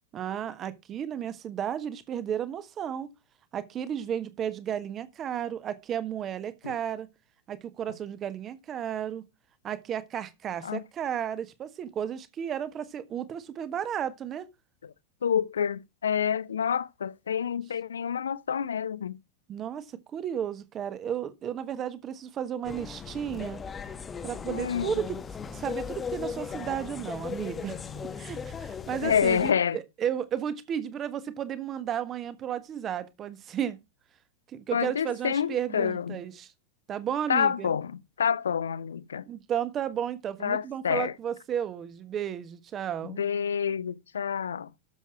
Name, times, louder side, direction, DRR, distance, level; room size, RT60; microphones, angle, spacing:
voice 1, 0.1-3.1 3.5-7.1 7.5-9.2 9.6-14.5 19.5-23.6 24.2-25.2 25.5-33.8 34.5-36.5 36.9-37.8 39.3-43.2, right 9 dB, 30° right, 1.4 m, -33 dB
voice 2, 15.2-19.2 24.5-25.0 29.0-29.8 34.7-36.2 37.3-39.2 40.4-41.1 43.0-44.7, left 7 dB, 70° left, 0.7 m, -28 dB
sound 1, 22.6-29.5, left 6 dB, 20° left, 1.1 m, -37 dB
12.5 x 7.3 x 4.7 m
figure-of-eight pair, 90°, 0 cm